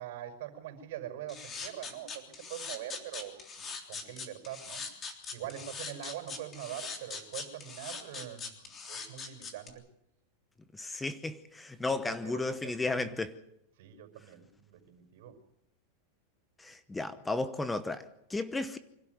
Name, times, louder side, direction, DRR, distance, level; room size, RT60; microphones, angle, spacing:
voice 1, 0.0-4.8 5.3-9.8 11.9-12.8 13.8-15.4, right 11 dB, 65° right, 5.6 m, -43 dB
sound 1, 1.3-9.7, left 5 dB, 25° left, 3.4 m, -41 dB
voice 2, 10.7-13.3 16.6-18.8, left 2 dB, 10° left, 1.0 m, -34 dB
25.5 x 12.5 x 9.6 m
supercardioid pair, 145°, 0 cm